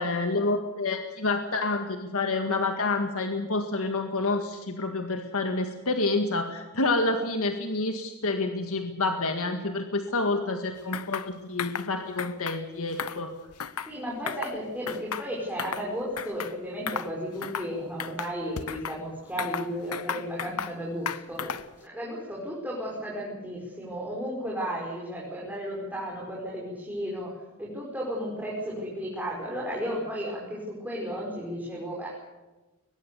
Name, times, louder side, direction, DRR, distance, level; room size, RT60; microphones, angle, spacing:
voice 1, 0.0-13.3, left 3 dB, 70° left, 5 dB, 1.9 m, -28 dB
sound 1, 10.9-11.3 11.6-11.9 12.2-12.6 12.9-13.9 14.3-14.6 14.9-15.9 16.2-16.5 16.9-17.1 17.4-17.7 18.0-19.0 19.4-20.8 21.1-21.7, left 7 dB, 85° left, 1.0 m, -34 dB
voice 2, 13.9-21.5 21.8-27.3 27.6-32.3, equal, 5° right, -4 dB, 5.5 m, -34 dB
22.5 x 21.0 x 7.0 m, 1.2 s
head